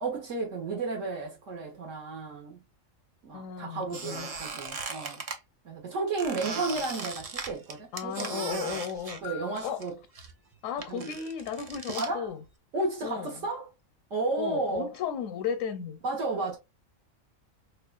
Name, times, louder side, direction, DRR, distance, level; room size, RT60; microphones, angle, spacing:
voice 1, 0.0-2.6 3.2-5.2 5.6-8.8 9.2-10.0 10.9-11.1 12.0-12.3 12.7-13.7 14.1-14.9 16.0-16.6, right 3 dB, 75° right, 1.5 m, -33 dB
voice 2, 3.3-4.3 7.9-9.2 9.6-9.8 10.6-12.4 13.0-13.5 14.4-16.0, left 7 dB, 80° left, 0.9 m, -35 dB
Squeak, 3.9-5.4 6.2-9.9 10.1-12.1, right 4 dB, 45° right, 0.5 m, -38 dB
sound 1, 8.6-9.8 10.7-10.9 11.9-12.0, left 11 dB, 55° left, 0.5 m, -46 dB
4.7 x 2.3 x 2.3 m
omnidirectional pair, 1.3 m